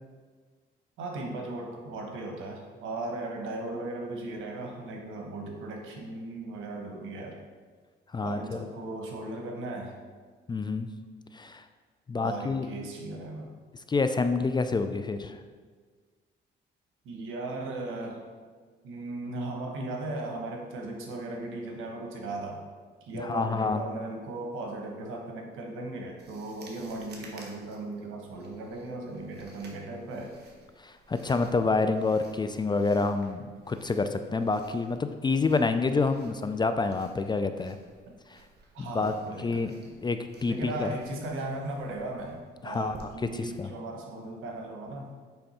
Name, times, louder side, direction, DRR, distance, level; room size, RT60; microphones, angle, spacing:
voice 1, 1.0-7.4 8.2-10.0 12.2-13.5 17.0-18.3 18.8-22.6 23.0-30.4 38.7-39.9 40.4-45.1, right 2 dB, 85° right, 1 dB, 1.1 m, -37 dB
voice 2, 8.1-8.7 10.5-10.9 11.3-11.7 12.1-12.7 13.7-15.4 23.2-23.9 30.8-37.8 38.3-38.4 38.8-39.1 39.4-39.7 40.0-40.9 42.6-43.7, left 4 dB, 20° left, 8 dB, 0.3 m, -28 dB
sound 1, 26.2-44.6, right 2 dB, 55° right, 1.2 m, -55 dB
7.7 x 3.4 x 4.3 m, 1.5 s
cardioid pair, 90°, 20 cm